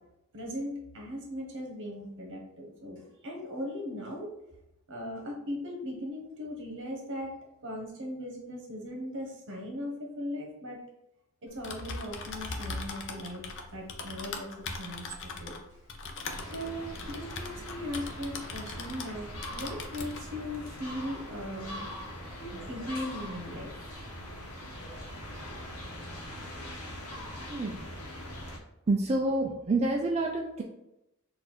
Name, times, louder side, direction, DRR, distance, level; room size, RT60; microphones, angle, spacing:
voice 1, 0.3-4.3 4.9-7.3 7.6-10.8 11.4-13.4 13.7-14.5 14.8-15.5 16.5-21.9 22.5-23.7 23.9-24.0, left 1 dB, 60° right, 0 dB, 1.2 m, -38 dB
Typing, 11.5-19.2 19.4-20.2, left 3 dB, 60° left, 0.6 m, -40 dB
sound 1, 16.2-28.6, equal, 75° left, 1.0 m, -42 dB
voice 2, 27.5-27.9 28.9-30.6, right 2 dB, 30° right, -1 dB, 0.4 m, -28 dB
4.1 x 2.6 x 4.3 m, 0.86 s
head